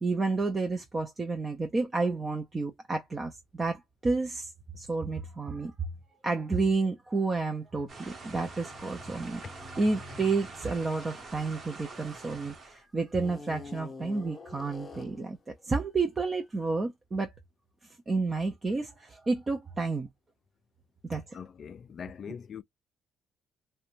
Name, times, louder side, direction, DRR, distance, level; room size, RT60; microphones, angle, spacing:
voice 1, 0.0-4.5 4.8-5.9 6.2-9.4 9.8-17.3 18.1-20.1 21.1-21.4, right 3 dB, 25° right, 0.4 m, -30 dB
sound 1, 7.7-12.5 13.1-15.3, left 2 dB, 25° left, 0.7 m, -48 dB
sound 2, 7.9-12.8, right 3 dB, 40° right, 0.9 m, -46 dB
voice 2, 21.3-22.6, left 7 dB, 45° left, 0.3 m, -42 dB
2.5 x 2.1 x 2.8 m
cardioid pair, 120°, 0 cm